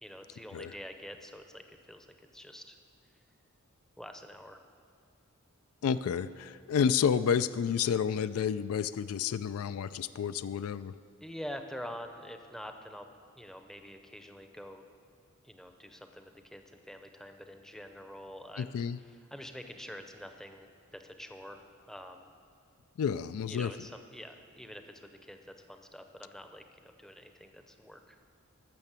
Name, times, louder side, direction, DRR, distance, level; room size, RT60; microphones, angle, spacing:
voice 1, 0.0-2.8 4.0-4.6 11.2-13.0 13.4-14.8 15.4-22.3 23.5-28.2, equal, ahead, 6 dB, 0.6 m, -46 dB
voice 2, 5.8-11.0 18.6-19.0 23.0-23.7, left 7 dB, 75° left, 14 dB, 0.3 m, -30 dB
12.0 x 6.8 x 7.4 m, 2.4 s
head